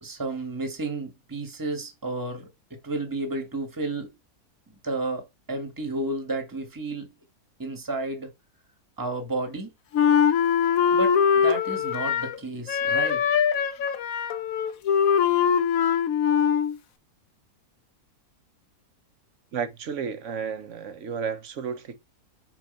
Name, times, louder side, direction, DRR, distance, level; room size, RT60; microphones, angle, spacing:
voice 1, 0.0-4.2 4.8-7.1 7.6-8.3 9.0-9.7 10.9-13.2, right 2 dB, 15° right, 1.5 m, -32 dB
Wind instrument woodwind instrument, 9.9-12.4 12.7-16.8, left 7 dB, 65° left, 1.2 m, -22 dB
voice 2, 19.5-22.0, right 6 dB, 55° right, 1.3 m, -32 dB
6.0 x 4.6 x 4.2 m
omnidirectional pair, 1.6 m